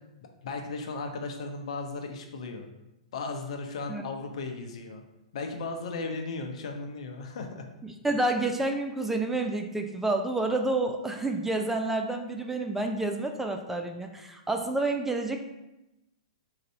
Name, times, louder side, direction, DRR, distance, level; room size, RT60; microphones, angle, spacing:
voice 1, 0.4-2.7 3.1-5.0 5.3-7.6, left 3 dB, 65° left, 4 dB, 0.7 m, -36 dB
voice 2, 7.8-15.4, right 2 dB, 5° right, 4 dB, 0.4 m, -29 dB
3.9 x 2.6 x 4.4 m, 0.95 s
hypercardioid pair, 120°, 4 cm